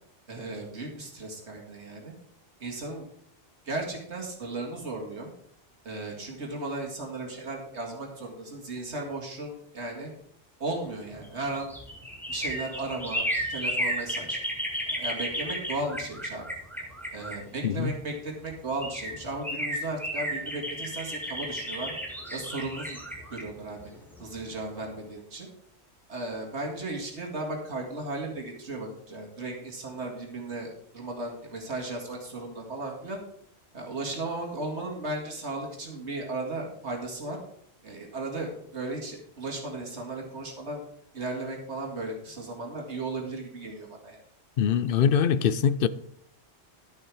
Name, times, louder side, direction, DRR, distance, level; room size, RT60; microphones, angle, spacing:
voice 1, 0.3-2.1 2.6-3.1 3.7-5.3 5.8-10.1 10.6-11.7 12.3-14.4 14.9-16.4 17.1-21.9 22.3-23.0 23.3-23.8 24.2-25.5 26.1-33.2 33.7-37.4 37.8-40.8 41.1-44.2, right 2 dB, 75° right, 2.3 m, -35 dB
sound 1, 11.1-17.9 18.5-18.6 18.8-24.6 24.9-25.0, equal, ahead, 1.9 m, -33 dB
voice 2, 17.6-17.9 44.6-45.9, left 7 dB, 60° left, 0.7 m, -23 dB
11.5 x 7.4 x 4.8 m
omnidirectional pair, 1.2 m